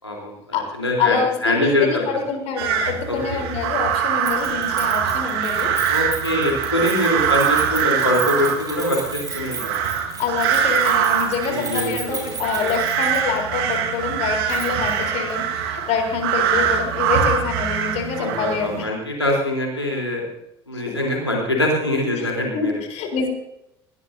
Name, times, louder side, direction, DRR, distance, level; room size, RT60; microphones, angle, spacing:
voice 1, 0.0-2.0 3.1-3.2 5.8-9.7 11.4-12.3 18.2-20.2 20.7-22.7, left 1 dB, 90° left, -1 dB, 3.6 m, -23 dB
voice 2, 1.0-5.7 10.2-18.9 20.9-21.0 22.1-22.3 22.5-23.3, left 5 dB, 55° left, 3 dB, 3.9 m, -26 dB
sound 1, 2.6-18.8, right 8 dB, 65° right, 1.7 m, -23 dB
Keys jangling, 4.2-13.4 13.7-13.8 14.5-15.0 15.3-15.4, right 5 dB, 30° right, 6.2 m, -35 dB
20.0 x 17.5 x 2.7 m, 0.83 s
figure-of-eight pair, 60°, 14 cm